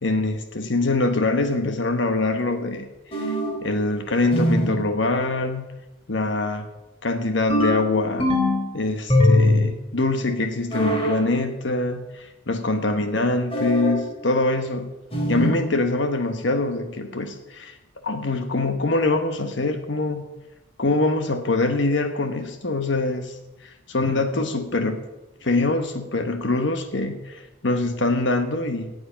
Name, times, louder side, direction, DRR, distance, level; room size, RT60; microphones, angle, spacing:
voice 1, 0.0-3.4 3.6-5.6 6.1-6.7 7.0-8.3 8.7-14.9 15.3-17.8 18.0-20.2 20.8-23.4 23.6-25.0 25.4-28.9, left 2 dB, 65° left, 7 dB, 1.2 m, -24 dB
sound 1, 3.1-3.7 4.3-4.8 7.5-8.7 9.1-9.8 10.7-11.2 13.5-14.0 15.1-15.6, left 1 dB, 30° left, 3.0 m, -21 dB
17.5 x 8.0 x 5.8 m, 1.0 s
head